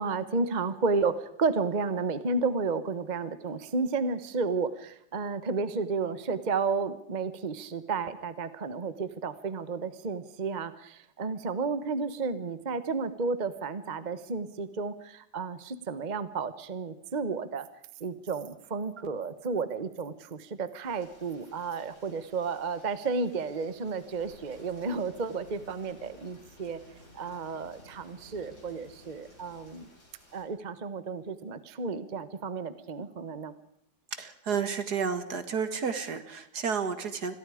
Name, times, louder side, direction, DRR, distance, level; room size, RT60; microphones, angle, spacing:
voice 1, 0.0-17.7 18.0-26.8 27.1-29.9 30.3-33.5, right 4 dB, 30° right, 13 dB, 1.1 m, -32 dB
Rain, 20.8-30.4, left 1 dB, 65° left, 8.0 m, -60 dB
sound 1, 24.2-29.9, left 1 dB, 40° left, 4.6 m, -55 dB
voice 2, 34.1-37.4, right 6 dB, 65° right, 10 dB, 2.3 m, -31 dB
28.0 x 21.5 x 5.0 m, 0.70 s
omnidirectional pair, 1.8 m